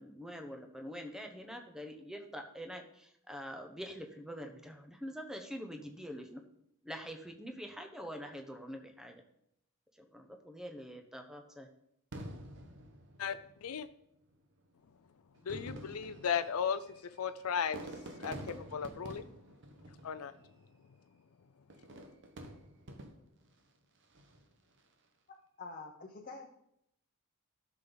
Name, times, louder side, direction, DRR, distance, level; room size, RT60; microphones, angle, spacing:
voice 1, 0.0-6.4 6.8-9.2 10.1-11.7, equal, 5° right, 4 dB, 0.9 m, -45 dB
Fireworks, 12.1-13.7 14.6-14.7 15.3-20.6 21.7-23.5 24.0-24.5, right 1 dB, 55° right, 1.1 m, -48 dB
voice 2, 13.2-13.9 15.4-16.8 17.2-17.8 18.2-19.3 20.0-20.3, left 7 dB, 90° left, 11 dB, 0.5 m, -35 dB
voice 3, 25.6-26.5, left 3 dB, 40° left, 0 dB, 0.9 m, -46 dB
12.5 x 6.0 x 3.9 m, 0.76 s
head